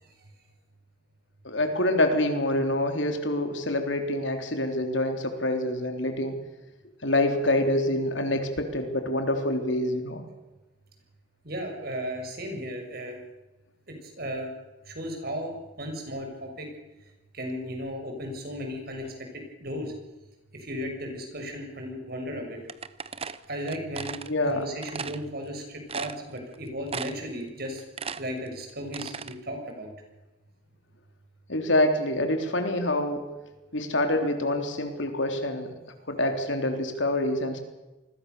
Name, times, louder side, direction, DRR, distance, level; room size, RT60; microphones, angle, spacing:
voice 1, 1.4-6.4 7.0-10.2 24.3-24.7 31.5-33.3 33.7-35.7 36.1-37.6, left 1 dB, 70° left, 6 dB, 3.6 m, -26 dB
voice 2, 11.4-13.2 13.9-14.5 14.8-16.7 17.3-19.0 19.3-19.9 20.6-22.6 23.5-24.2 24.5-27.8 28.2-29.9, equal, 50° right, 3 dB, 6.7 m, -35 dB
sound 1, 22.7-24.3 24.8-25.2 25.6-25.7 25.9-26.5 26.9-27.3 27.6-29.3, right 5 dB, 30° right, 0.8 m, -36 dB
28.0 x 21.0 x 7.0 m, 1.1 s
head